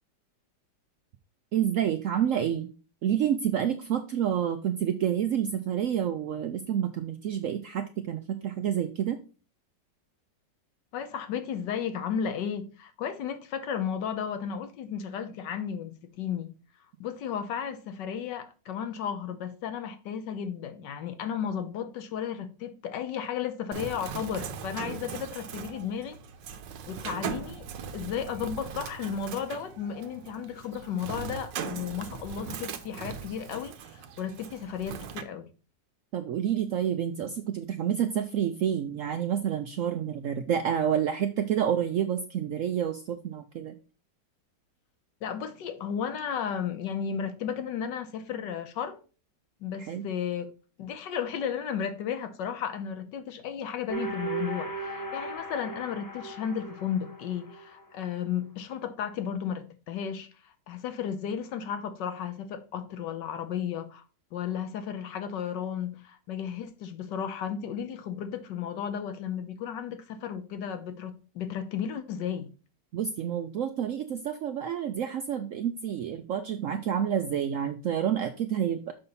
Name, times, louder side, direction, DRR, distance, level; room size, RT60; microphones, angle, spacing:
voice 1, 1.5-2.7 3.0-9.2 36.1-43.7 49.9-50.1 72.9-78.9, right 9 dB, 70° right, 0.7 m, -29 dB
voice 2, 10.9-16.5 17.0-26.2 26.9-35.5 45.2-49.0 49.6-50.5 50.8-64.0 64.3-72.5, left 8 dB, 80° left, 1.5 m, -34 dB
Bird, 23.7-35.2, right 7 dB, 90° right, 1.4 m, -40 dB
sound 1, 53.9-57.8, right 3 dB, 20° left, 0.5 m, -37 dB
6.7 x 5.4 x 4.1 m
omnidirectional pair, 1.9 m